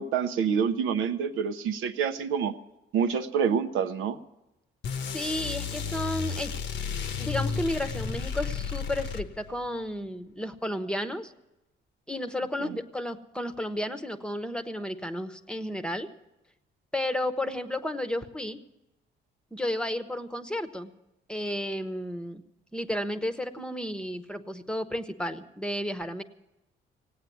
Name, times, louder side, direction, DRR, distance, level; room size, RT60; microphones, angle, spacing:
voice 1, 0.0-2.5 2.9-4.2 12.6-12.7, right 7 dB, 85° right, 8 dB, 0.8 m, -27 dB
sound 1, 4.8-9.6, left 6 dB, 70° left, 0.9 m, -32 dB
voice 2, 5.1-6.5 7.2-11.3 12.1-16.1 16.9-18.6 19.5-20.9 21.3-22.4 22.7-26.2, left 1 dB, 5° left, 10 dB, 0.9 m, -32 dB
17.0 x 8.8 x 9.2 m, 0.95 s
cardioid pair, 90°, 20 cm